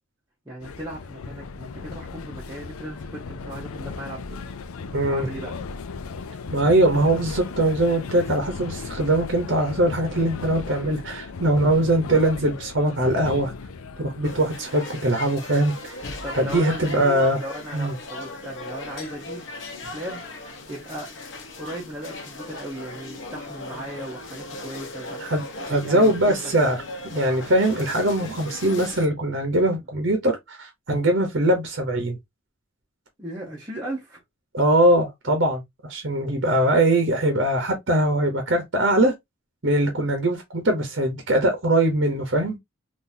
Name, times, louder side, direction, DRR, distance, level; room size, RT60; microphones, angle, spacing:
voice 1, 0.4-4.4 5.1-5.5 16.2-19.5 19.9-20.2 20.7-21.1 21.6-25.2 25.7-26.7 33.2-34.2, right 1 dB, 15° right, 0.9 m, -36 dB
sound 1, 0.6-14.6, left 4 dB, 85° left, 0.4 m, -36 dB
voice 2, 4.9-5.3 6.5-13.5 14.0-16.0 16.3-17.4 17.7-17.9 25.2-26.8 27.0-32.2 34.5-39.1 39.6-42.6, right 1 dB, 55° right, 0.9 m, -21 dB
sound 2, 14.2-29.1, left 2 dB, 60° left, 1.0 m, -38 dB
3.8 x 2.6 x 2.6 m
head